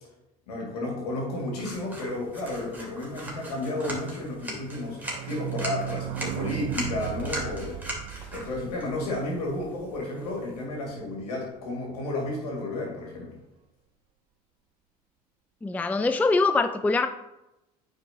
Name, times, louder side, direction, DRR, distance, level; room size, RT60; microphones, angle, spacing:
voice 1, 0.5-5.0 5.3-7.8 8.3-13.4, left 2 dB, 75° left, -2 dB, 2.2 m, -32 dB
sound 1, 1.5-10.6, right 1 dB, 10° right, 2.6 m, -40 dB
sound 2, 4.7-10.3 10.6-10.7 10.8-10.9 11.2-11.3, right 13 dB, 60° right, 0.5 m, -36 dB
voice 2, 15.6-17.1, left 3 dB, 10° left, 8 dB, 0.4 m, -23 dB
8.8 x 5.0 x 2.8 m, 0.93 s
figure-of-eight pair, 65°, 20 cm